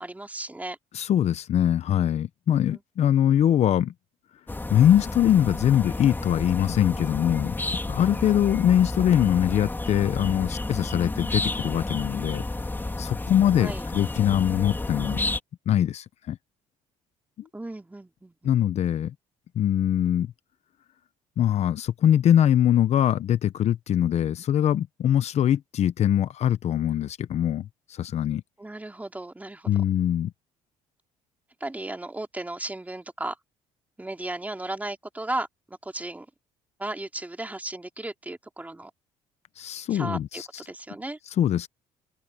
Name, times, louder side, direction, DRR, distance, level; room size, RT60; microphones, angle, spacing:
voice 1, 0.0-0.8 2.7-2.8 13.6-13.9 17.5-18.5 28.6-29.7 31.6-33.4 34.0-36.3 36.8-38.9 39.9-41.2, right 2 dB, 10° right, 3.6 m, -35 dB
voice 2, 0.9-3.9 4.7-7.6 7.9-12.4 13.0-15.2 15.7-16.4 18.4-19.1 19.5-20.3 21.4-28.4 29.7-30.3 39.6-40.5 41.4-41.7, left 10 dB, 55° left, 1.0 m, -22 dB
sound 1, 4.5-15.4, left 2 dB, 15° left, 4.6 m, -31 dB
supercardioid pair, 80°, 13 cm